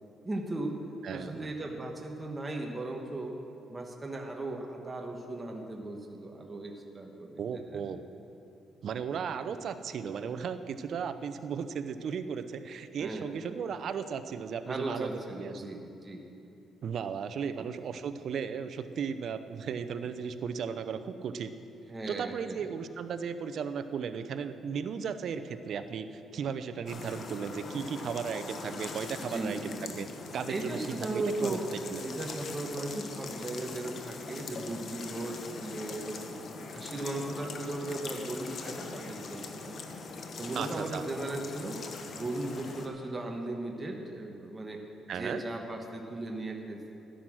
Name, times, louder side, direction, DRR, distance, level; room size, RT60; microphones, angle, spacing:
voice 1, 0.2-0.8 1.1-3.4 3.7-7.8 13.0-13.3 14.6-16.2 17.6-17.7 21.9-22.6 29.2-29.7 30.5-31.6 32.0-36.3 36.7-39.8 40.4-41.8 42.1-44.8 45.1-46.9, right 2 dB, 25° right, 1 dB, 1.4 m, -37 dB
voice 2, 1.0-1.5 7.4-8.0 8.8-15.7 16.8-21.5 22.1-30.1 30.3-31.6 31.9-32.0 40.5-41.0 45.1-45.4, right 6 dB, 65° right, 11 dB, 0.7 m, -36 dB
sound 1, 26.9-42.9, left 4 dB, 55° left, 1.2 m, -42 dB
13.0 x 10.0 x 6.3 m, 2.8 s
cardioid pair, 90°, 0 cm